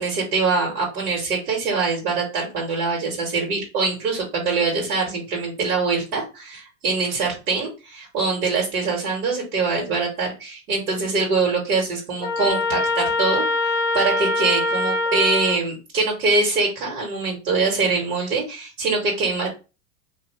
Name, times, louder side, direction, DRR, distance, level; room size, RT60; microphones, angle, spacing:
voice 1, 0.0-19.5, right 4 dB, 85° right, -1 dB, 1.4 m, -23 dB
Trumpet, 12.2-15.6, left 2 dB, 20° left, 0.5 m, -23 dB
2.6 x 2.5 x 3.0 m, 0.30 s
supercardioid pair, 130°, 43 cm